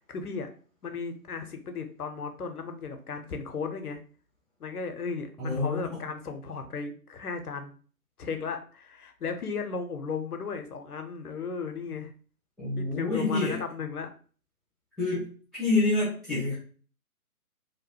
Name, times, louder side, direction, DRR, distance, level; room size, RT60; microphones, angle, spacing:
voice 1, 0.1-0.5 0.8-4.0 4.6-7.7 8.2-12.1 12.8-14.1, left 5 dB, 80° left, 7 dB, 0.7 m, -35 dB
voice 2, 5.4-5.8 12.6-13.6 15.0-16.5, left 3 dB, ahead, -13 dB, 0.4 m, -27 dB
2.8 x 2.1 x 2.7 m, 0.41 s
figure-of-eight pair, 140°, 45 cm